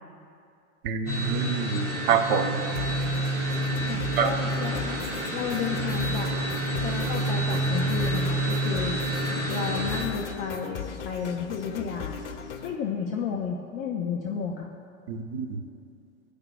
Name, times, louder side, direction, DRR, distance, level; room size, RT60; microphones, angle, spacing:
voice 1, 0.8-2.6 4.2-4.3 15.1-15.6, right 6 dB, 45° right, 5 dB, 0.8 m, -26 dB
sound 1, 1.1-10.0, right 1 dB, 90° right, 1.8 m, -28 dB
sound 2, 2.7-12.8, left 6 dB, 60° left, 0.7 m, -38 dB
voice 2, 3.9-5.0 5.3-6.4 6.8-9.0 9.5-12.2 12.6-14.7, left 6 dB, 20° left, 0 dB, 0.3 m, -32 dB
15.0 x 5.0 x 2.3 m, 2.4 s
figure-of-eight pair, 90°, 41 cm